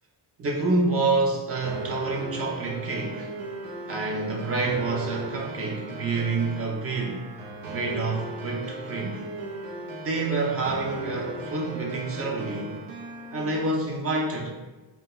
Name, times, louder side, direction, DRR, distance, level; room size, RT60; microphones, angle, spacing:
voice 1, 0.4-3.3 3.9-7.3 7.7-9.2 10.0-12.8 13.3-14.5, right 3 dB, 35° right, -1 dB, 0.5 m, -28 dB
sound 1, 1.6-13.6, right 2 dB, 90° right, 0.6 m, -37 dB
2.2 x 2.2 x 2.9 m, 1.2 s
cardioid pair, 80°, 44 cm